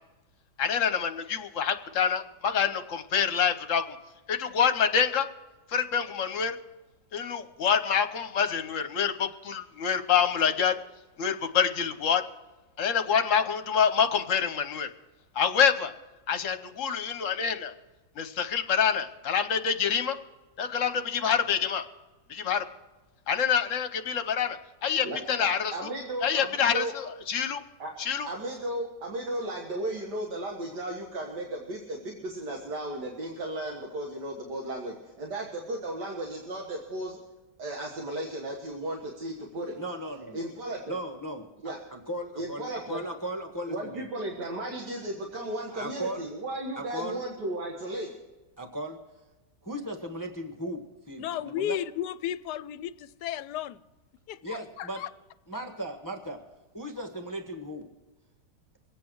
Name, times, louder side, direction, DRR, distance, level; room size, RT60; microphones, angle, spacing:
voice 1, 0.6-4.0 4.3-5.3 5.7-6.6 7.1-10.7 11.2-12.2 12.8-14.9 15.3-15.9 16.3-17.7 18.2-20.2 20.6-21.8 22.3-22.6 23.3-25.9 26.2-27.6 28.0-28.3, left 7 dB, 55° left, 1.2 m, -26 dB
voice 2, 25.0-26.9 27.8-27.9 28.3-37.2 37.6-39.7 40.3-41.0 41.6-41.8 42.4-43.0 43.7-48.1, right 1 dB, 80° right, 2.2 m, -35 dB
voice 3, 39.7-40.5 40.9-44.1 45.7-46.3 46.8-47.2 48.6-49.0 49.6-51.8 54.4-55.0 55.5-56.4 56.7-57.9, equal, 15° left, 1.1 m, -37 dB
voice 4, 51.2-53.8 54.3-55.1, left 11 dB, 80° left, 1.1 m, -34 dB
24.0 x 8.6 x 4.7 m
omnidirectional pair, 1.8 m